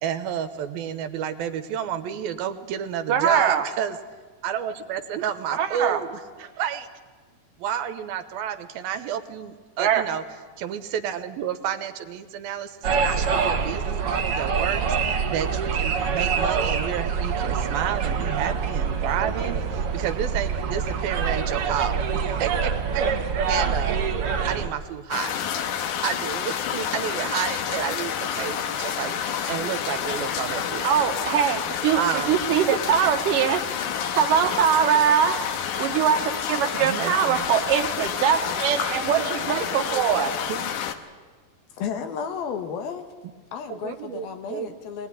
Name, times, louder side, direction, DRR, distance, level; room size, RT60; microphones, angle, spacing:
voice 1, 0.0-4.0 4.4-6.2 6.6-6.9 7.6-10.2 10.6-23.1 23.5-24.0 24.5-25.4 26.0-29.2 29.5-30.9 32.0-32.4 32.7-32.8 36.8-37.5 39.1-39.6 39.9-40.1 40.5-40.7 43.7-44.7, right 9 dB, 85° right, 10 dB, 2.9 m, -30 dB
voice 2, 3.1-3.7 5.5-6.0 6.4-6.5 9.8-10.1 30.8-33.7 34.2-35.4 35.8-40.3, right 8 dB, 70° right, 7 dB, 2.8 m, -22 dB
sound 1, 12.8-24.7, right 6 dB, 50° right, 1.9 m, -25 dB
sound 2, 25.1-41.0, left 8 dB, 65° left, 2.4 m, -29 dB
voice 3, 41.8-43.1 43.5-45.1, left 7 dB, 85° left, 7 dB, 3.5 m, -33 dB
22.5 x 19.0 x 10.0 m, 1.4 s
omnidirectional pair, 4.2 m